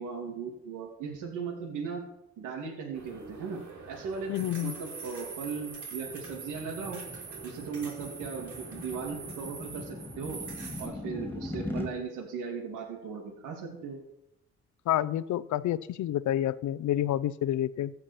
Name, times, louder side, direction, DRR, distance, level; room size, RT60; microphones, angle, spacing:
voice 1, 0.0-2.0 2.4-4.3 4.6-7.0 7.4-10.4 10.8-14.0, right 5 dB, 90° right, 0 dB, 2.9 m, -37 dB
sound 1, 2.9-10.9, right 5 dB, 70° right, 5.0 m, -44 dB
voice 2, 4.3-4.7 14.9-17.9, left 12 dB, 70° left, 18 dB, 0.7 m, -29 dB
sound 2, 5.4-11.9, left 2 dB, 5° left, 2.9 m, -41 dB
15.0 x 5.9 x 8.4 m, 0.82 s
cardioid pair, 90°, 30 cm